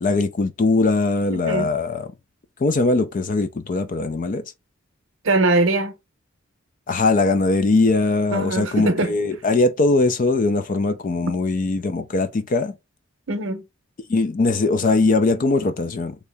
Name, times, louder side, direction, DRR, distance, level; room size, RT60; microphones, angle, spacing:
voice 1, 0.0-2.1 2.6-4.4 6.9-12.7 14.1-16.2, left 3 dB, 40° left, 0.4 m, -20 dB
voice 2, 1.3-1.7 5.2-5.9 8.3-9.2 13.3-13.6, right 2 dB, 70° right, 0.7 m, -21 dB
3.0 x 2.7 x 3.4 m
head